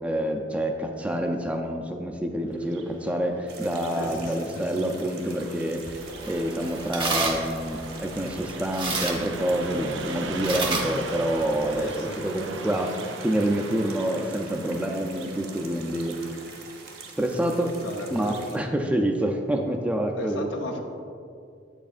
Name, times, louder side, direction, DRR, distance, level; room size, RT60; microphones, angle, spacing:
voice 1, 0.0-13.0 13.2-16.4 17.2-17.7 18.1-20.5, right 1 dB, 5° right, 2 dB, 0.4 m, -27 dB
Car passing by, 2.6-18.5, right 3 dB, 75° right, 0.5 m, -41 dB
sound 1, 3.5-18.6, right 4 dB, 55° right, 0.9 m, -46 dB
voice 2, 3.9-5.1 11.7-12.2 17.8-18.3 20.2-20.8, left 1 dB, 75° left, 3 dB, 0.7 m, -36 dB
sound 2, 5.9-11.9, right 3 dB, 25° right, 0.7 m, -32 dB
8.0 x 7.1 x 2.4 m, 2.4 s
head